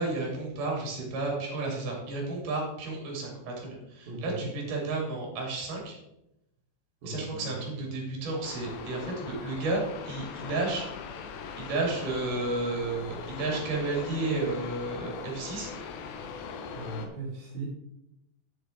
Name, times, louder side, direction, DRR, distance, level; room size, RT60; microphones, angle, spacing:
voice 1, 0.0-5.9 7.0-10.9 11.5-15.7, right 3 dB, 65° right, -1 dB, 4.1 m, -32 dB
voice 2, 4.1-4.5 7.0-7.9 16.7-17.7, right 2 dB, 80° right, -5 dB, 3.8 m, -38 dB
sound 1, 8.4-17.1, left 5 dB, 85° left, 2.8 m, -40 dB
10.5 x 7.0 x 4.5 m, 0.86 s
omnidirectional pair, 4.1 m